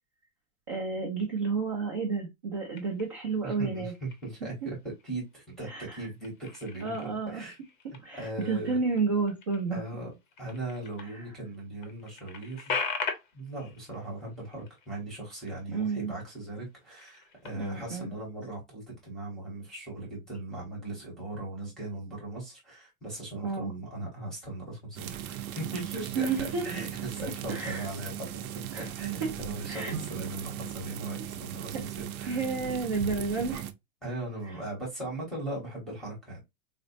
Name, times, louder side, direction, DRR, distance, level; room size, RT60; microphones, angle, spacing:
voice 1, 0.7-3.9 4.4-4.7 5.7-6.1 6.8-7.4 8.0-9.8 11.0-11.2 15.7-16.1 17.5-18.1 23.4-23.7 26.1-26.6 27.2-27.9 28.7-28.9 29.2-29.3 29.7-29.9 31.7-31.8 32.2-33.7 34.5-34.6, right 4 dB, 25° right, 0.4 m, -31 dB
sound 1, 2.7-3.4 3.9-4.5 4.9-5.7 6.0-11.2 11.5-11.6 11.8-15.8 16.1-16.4 16.8-17.9, left 5 dB, 35° left, 0.6 m, -40 dB
voice 2, 3.4-4.8 5.0-7.6 8.1-8.8 9.7-10.1 10.4-12.8 13.3-32.4 34.0-36.4, right 2 dB, ahead, 0.8 m, -39 dB
sound 2, 25.0-33.7, right 10 dB, 85° right, 0.7 m, -38 dB
4.1 x 2.0 x 2.5 m
supercardioid pair, 175°, 43 cm